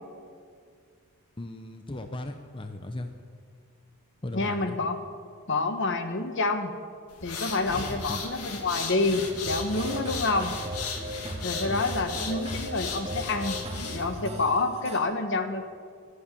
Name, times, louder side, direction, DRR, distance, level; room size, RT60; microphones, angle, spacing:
voice 1, 1.4-3.1 4.2-4.8 8.1-8.2 11.7-11.8, left 1 dB, 25° left, 6 dB, 0.7 m, -37 dB
voice 2, 4.3-5.0 5.5-6.7 7.2-10.5 11.4-13.6 13.9-15.6, left 3 dB, 55° left, 8 dB, 1.3 m, -28 dB
sound 1, 7.1-14.2, left 4 dB, 90° left, 2.1 m, -36 dB
sound 2, 9.4-15.0, right 1 dB, 25° right, 2.3 m, -37 dB
14.5 x 11.5 x 8.5 m, 2.1 s
head